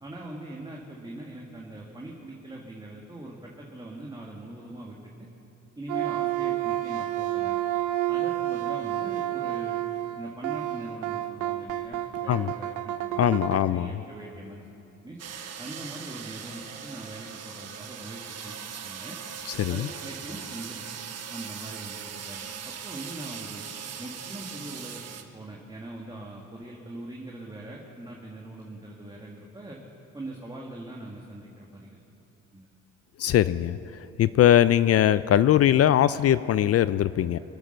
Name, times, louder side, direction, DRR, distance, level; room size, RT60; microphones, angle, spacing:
voice 1, 0.0-5.0 5.8-7.6 8.1-9.8 10.2-15.2 15.6-18.6 18.8-19.2 19.7-20.8 21.3-23.6 24.0-25.0 25.3-29.8 30.1-32.0 32.5-32.7, right 1 dB, 15° right, -3 dB, 1.9 m, -42 dB
sound 1, 5.9-13.6, right 14 dB, 90° right, 0.7 m, -30 dB
voice 2, 13.1-13.9 19.5-19.9 33.2-33.8 34.2-37.4, left 11 dB, 55° left, 15 dB, 0.4 m, -21 dB
sound 2, 15.2-25.2, right 7 dB, 55° right, 1.2 m, -40 dB
24.0 x 9.1 x 6.6 m, 2.9 s
cardioid pair, 90°, 30 cm